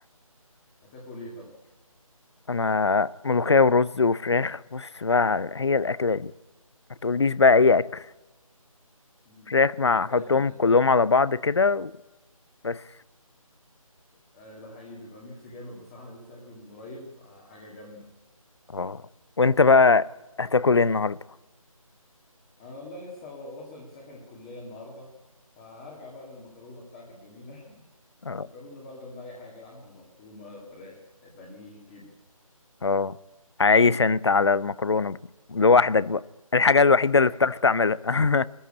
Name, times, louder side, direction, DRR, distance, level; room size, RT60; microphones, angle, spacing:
voice 1, 0.9-1.5 9.3-9.5 9.9-10.6 14.3-18.1 22.6-25.1 25.6-27.8 28.3-32.1 37.3-37.4, left 2 dB, 10° left, 2.0 m, -44 dB
voice 2, 2.5-6.3 7.0-8.0 9.5-11.9 12.6-12.8 18.7-19.0 19.4-20.1 20.4-21.2 28.2-28.5 32.8-33.2 33.6-35.2 35.5-36.2 36.5-38.5, left 4 dB, 50° left, 0.7 m, -21 dB
20.0 x 14.5 x 9.8 m
figure-of-eight pair, 175°, 18 cm